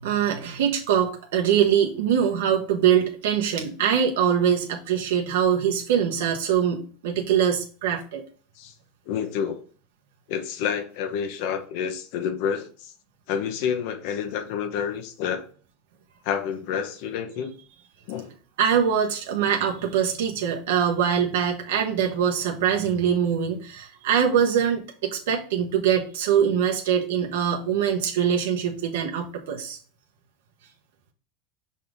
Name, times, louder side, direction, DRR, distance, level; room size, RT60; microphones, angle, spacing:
voice 1, 0.0-8.2 18.6-29.8, right 8 dB, 90° right, 1.1 m, -23 dB
voice 2, 9.1-9.6 10.3-12.9 13.3-15.4 16.2-17.6 18.1-18.3, left 7 dB, 50° left, 1.0 m, -29 dB
6.2 x 4.2 x 3.7 m
supercardioid pair, 175°, 0 cm